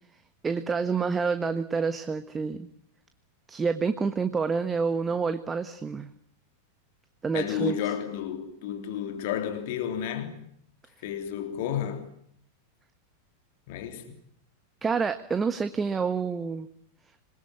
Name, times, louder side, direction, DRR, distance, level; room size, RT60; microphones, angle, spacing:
voice 1, 0.4-2.7 3.5-6.1 7.2-7.8 14.8-16.7, right 5 dB, 15° right, 1.4 m, -28 dB
voice 2, 7.3-10.4 11.0-12.1 13.7-14.2, left 9 dB, 50° left, 3.3 m, -31 dB
27.0 x 21.0 x 9.8 m
figure-of-eight pair, 90°, 0 cm